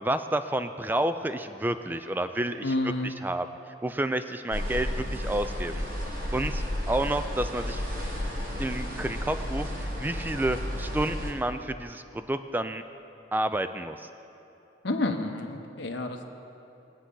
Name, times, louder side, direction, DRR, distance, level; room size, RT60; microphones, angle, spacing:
voice 1, 0.0-5.8 6.3-7.8 8.6-12.8 13.3-14.1, right 1 dB, 10° right, 9 dB, 0.3 m, -30 dB
voice 2, 2.6-3.1 14.8-16.2, left 2 dB, 65° left, 4 dB, 1.0 m, -29 dB
sound 1, 4.5-11.3, left 1 dB, 45° right, 1.6 m, -32 dB
21.5 x 8.3 x 3.8 m, 2.9 s
head